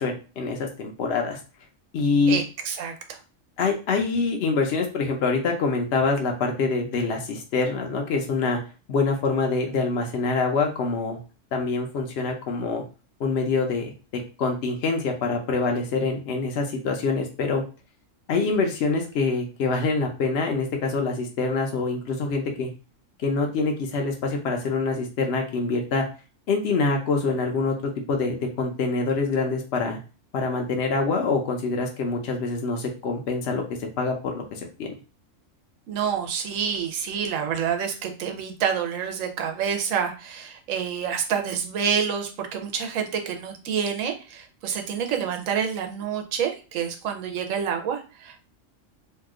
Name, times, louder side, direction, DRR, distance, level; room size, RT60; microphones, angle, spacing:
voice 1, 0.0-1.4 1.9-2.4 3.6-8.6 8.9-11.2 11.5-12.8 13.2-17.6 18.3-22.7 23.2-26.0 26.5-30.0 30.3-34.9, left 4 dB, 60° left, 2 dB, 0.8 m, -25 dB
voice 2, 2.3-3.2 35.9-48.4, right 7 dB, 80° right, 4 dB, 1.0 m, -28 dB
2.8 x 2.3 x 3.5 m, 0.34 s
omnidirectional pair, 1.4 m